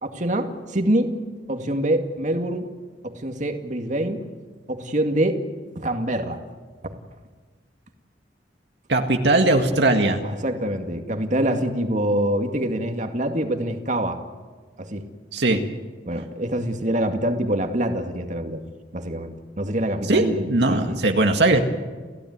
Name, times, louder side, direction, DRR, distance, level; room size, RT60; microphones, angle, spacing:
voice 1, 0.0-1.1 1.5-2.7 3.0-4.2 4.7-5.4 5.8-6.4 6.8-6.9 10.2-14.2 14.8-15.0 16.1-18.6 18.9-21.0, right 1 dB, 45° right, 5 dB, 2.2 m, -25 dB
voice 2, 8.9-10.2 15.3-15.6 20.1-21.6, right 2 dB, 70° right, 4 dB, 1.9 m, -19 dB
30.0 x 16.0 x 9.6 m, 1.4 s
head